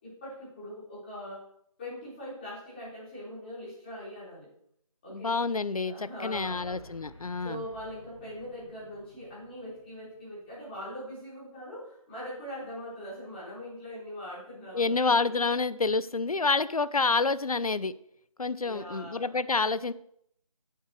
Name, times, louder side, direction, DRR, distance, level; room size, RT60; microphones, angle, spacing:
voice 1, 0.0-1.5 1.8-4.5 5.0-5.4 5.7-6.8 7.4-15.4 18.6-19.4, equal, 15° left, -10 dB, 4.5 m, -42 dB
voice 2, 5.1-7.6 14.7-17.9 18.4-19.9, left 4 dB, 75° left, 16 dB, 0.6 m, -28 dB
sound 1, 6.3-10.8, left 1 dB, 50° left, 1.6 m, -52 dB
11.5 x 7.9 x 3.2 m, 0.70 s
figure-of-eight pair, 165°, 19 cm